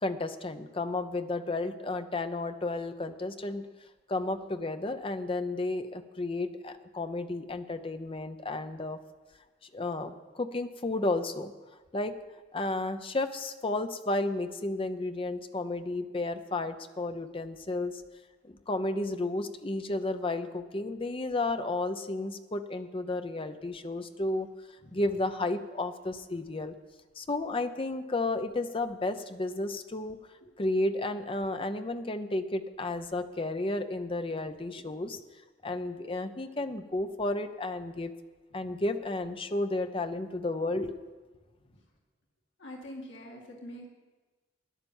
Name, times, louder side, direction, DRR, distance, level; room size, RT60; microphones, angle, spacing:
voice 1, 0.0-3.7 4.1-9.0 9.7-11.5 11.9-12.1 12.5-17.9 18.4-24.5 24.9-26.7 27.2-30.2 30.6-35.2 35.6-38.1 38.5-41.1, left 2 dB, 30° left, 9 dB, 0.7 m, -32 dB
voice 2, 42.6-43.9, equal, 75° left, 0 dB, 2.3 m, -46 dB
13.0 x 10.5 x 7.2 m, 1.3 s
head